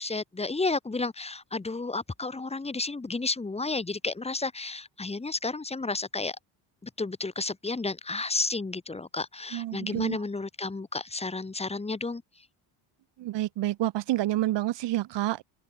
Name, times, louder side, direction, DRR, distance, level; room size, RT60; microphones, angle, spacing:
voice 1, 0.0-6.4 6.8-12.2, left 3 dB, 15° left, 4.5 m, -32 dB
voice 2, 9.5-10.2 13.2-15.4, right 15 dB, 65° right, 4.5 m, -28 dB
cardioid pair, 160°, 45 cm